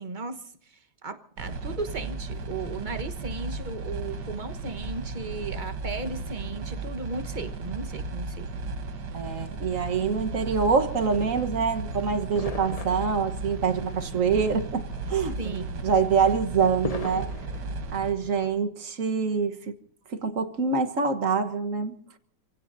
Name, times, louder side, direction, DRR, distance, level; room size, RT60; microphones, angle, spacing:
voice 1, 0.0-8.7 15.4-15.8, right 3 dB, 30° right, 1.2 m, -36 dB
sound 1, 1.4-18.1, right 3 dB, 65° right, 1.8 m, -35 dB
voice 2, 9.1-15.6 15.8-17.3 17.9-19.7 20.1-22.0, right 5 dB, 45° right, 1.6 m, -25 dB
sound 2, 11.2-18.6, left 4 dB, 65° left, 0.3 m, -42 dB
28.0 x 17.0 x 2.7 m
omnidirectional pair, 2.0 m